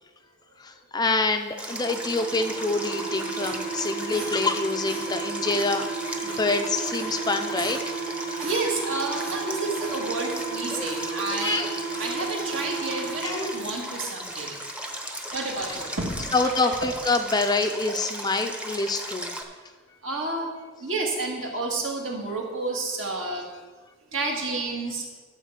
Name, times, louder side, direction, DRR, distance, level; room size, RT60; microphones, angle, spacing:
voice 1, 0.6-5.9 6.2-7.8 8.3-8.5 10.7-11.7 13.2-13.5 16.3-19.4, left 3 dB, 20° left, 6 dB, 0.5 m, -26 dB
Stream, 1.6-19.4, right 1 dB, 5° right, 0.8 m, -37 dB
sound 1, 1.7-13.7, right 4 dB, 45° right, 1.4 m, -33 dB
sound 2, 3.4-4.5 4.9-5.2 5.5-5.8 6.3-6.7 6.9-7.3 7.6-8.0 8.4-8.9 9.2-10.0 10.3-10.6 10.8-11.7 11.9-12.2 12.5-13.2 13.6-13.8, right 2 dB, 90° right, 2.6 m, -42 dB
voice 2, 8.4-11.7 12.0-14.6 15.3-16.3 20.0-20.5 20.8-23.5 24.1-25.0, right 2 dB, 65° right, -1 dB, 2.0 m, -30 dB
12.0 x 4.6 x 7.3 m, 1.4 s
head